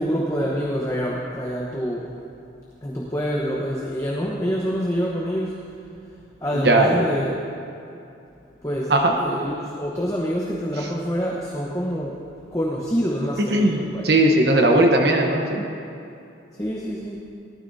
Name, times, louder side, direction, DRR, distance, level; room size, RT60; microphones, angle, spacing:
voice 1, 0.0-2.0 2.8-5.5 6.4-7.4 8.6-8.9 9.2-12.2 12.5-14.0 16.6-17.3, equal, 15° left, -4 dB, 1.0 m, -26 dB
voice 2, 6.5-7.1 8.9-9.1 13.5-15.6, right 1 dB, 55° right, 2 dB, 1.0 m, -18 dB
18.5 x 13.0 x 2.8 m, 2.6 s
head